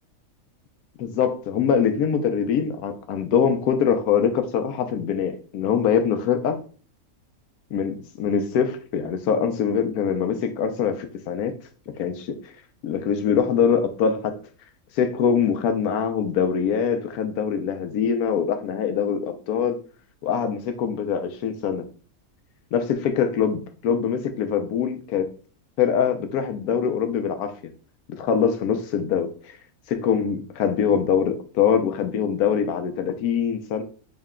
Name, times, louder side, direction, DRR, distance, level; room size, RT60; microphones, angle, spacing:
voice 1, 1.0-6.6 7.7-11.5 12.0-12.4 12.8-14.3 15.0-19.8 20.2-21.9 22.7-25.3 25.8-27.5 28.1-29.6 29.9-33.8, left 7 dB, 80° left, 7 dB, 1.1 m, -23 dB
3.8 x 2.2 x 3.6 m, 0.40 s
omnidirectional pair, 1.6 m